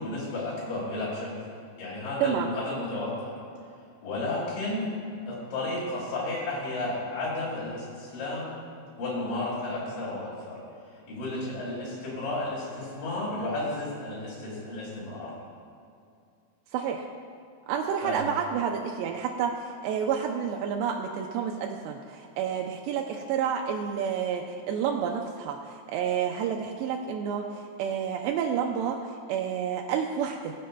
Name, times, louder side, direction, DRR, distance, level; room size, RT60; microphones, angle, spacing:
voice 1, 0.0-1.3 1.8-3.4 4.0-4.9 5.3-8.6 9.0-10.6 10.9-15.4 18.0-18.2, left 2 dB, 55° left, -9 dB, 3.6 m, -33 dB
voice 2, 16.7-17.1 17.7-30.5, right 7 dB, 85° right, 2 dB, 2.7 m, -29 dB
22.5 x 7.6 x 2.2 m, 2.4 s
omnidirectional pair, 4.9 m